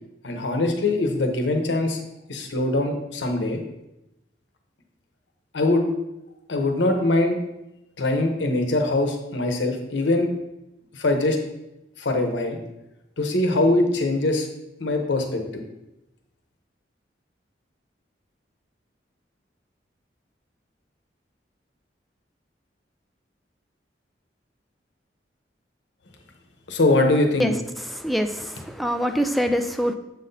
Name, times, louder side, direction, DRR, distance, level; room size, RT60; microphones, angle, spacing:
voice 1, 0.2-2.0 2.3-3.6 5.5-5.9 6.5-7.4 8.0-10.3 10.9-11.4 12.0-12.6 13.2-14.5 14.8-15.6 26.7-27.5, left 2 dB, 80° left, 4 dB, 0.9 m, -22 dB
voice 2, 27.9-29.9, equal, ahead, 6 dB, 0.3 m, -24 dB
7.2 x 5.8 x 2.7 m, 0.93 s
head